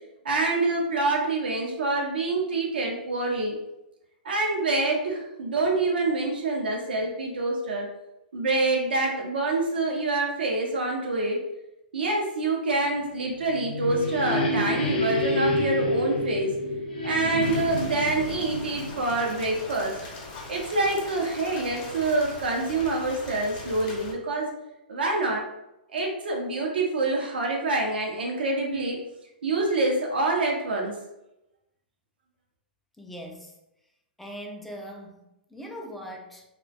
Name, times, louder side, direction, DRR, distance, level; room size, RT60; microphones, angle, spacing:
voice 1, 0.2-3.6 4.2-7.9 8.3-11.4 11.9-16.6 17.0-20.0 20.5-24.5 24.9-25.4 25.9-29.0 29.4-31.0, right 2 dB, 85° right, 0 dB, 0.5 m, -26 dB
sound 1, 13.2-19.9, left 1 dB, 85° left, 0.6 m, -28 dB
Rain, 17.4-24.1, left 3 dB, 50° left, 0.7 m, -41 dB
voice 2, 33.0-33.5 34.2-35.2 35.5-36.4, equal, ahead, 1 dB, 0.3 m, -40 dB
2.4 x 2.1 x 2.4 m, 0.88 s
hypercardioid pair, 125°, 5 cm